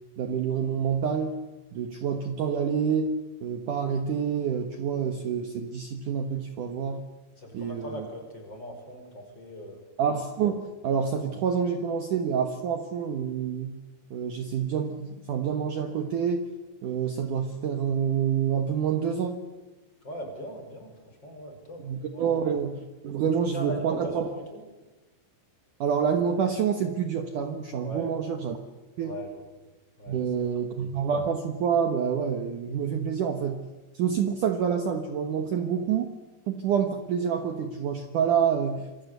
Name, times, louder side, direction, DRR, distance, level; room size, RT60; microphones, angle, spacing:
voice 1, 0.2-1.4 1.7-7.0 7.5-8.1 10.0-13.8 14.1-16.5 16.8-19.4 21.8-24.3 25.8-28.6 29.0-29.2 30.1-33.6 33.9-36.1 36.5-39.0, right 7 dB, 80° right, 6 dB, 1.8 m, -27 dB
voice 2, 7.4-9.8 20.0-21.8 22.1-22.5 23.5-24.6 27.8-28.1 29.0-29.4 30.0-30.5, equal, 20° left, 3 dB, 5.8 m, -39 dB
27.0 x 25.5 x 8.2 m, 1.1 s
omnidirectional pair, 5.8 m